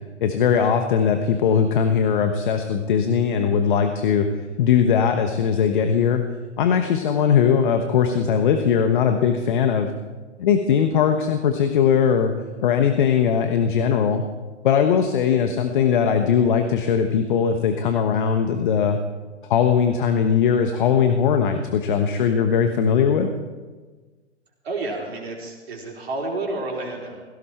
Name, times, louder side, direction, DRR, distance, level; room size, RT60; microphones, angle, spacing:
voice 1, 0.2-4.3 4.6-6.2 6.6-9.9 10.4-12.3 12.6-14.2 14.6-19.0 19.5-23.3, left 7 dB, 45° left, 7 dB, 1.1 m, -20 dB
voice 2, 24.6-27.2, right 2 dB, 60° right, -1 dB, 4.2 m, -30 dB
16.5 x 16.0 x 4.5 m, 1.4 s
figure-of-eight pair, 125°, 35 cm